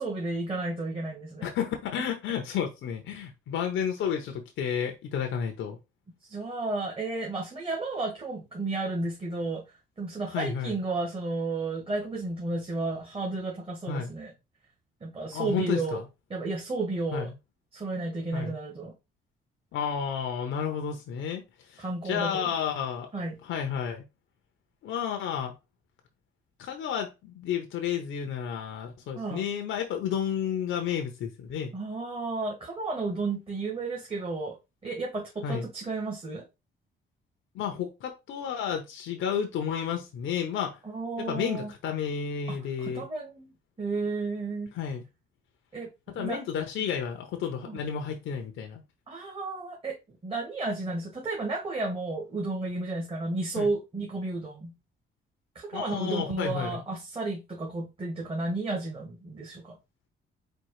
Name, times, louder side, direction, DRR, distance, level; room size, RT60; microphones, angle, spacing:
voice 1, 0.0-1.5 6.3-14.3 15.0-16.0 16.3-17.3 17.7-18.9 21.8-22.5 23.1-23.4 29.1-29.4 31.7-34.6 34.8-36.4 40.8-41.7 42.5-43.5 43.8-44.7 45.7-46.4 47.6-47.8 49.1-54.7 55.5-59.8, right 3 dB, 25° right, 1.5 m, -32 dB
voice 2, 1.4-5.8 10.3-10.7 13.9-14.1 15.3-16.0 17.1-17.3 18.3-18.6 19.7-23.1 23.4-24.0 24.8-25.5 26.6-31.7 35.4-35.7 37.5-40.8 41.2-43.0 44.7-45.0 46.1-48.8 53.6-53.7 55.7-56.8, left 8 dB, 75° left, 0.8 m, -31 dB
4.4 x 2.3 x 4.8 m
cardioid pair, 90°, 20 cm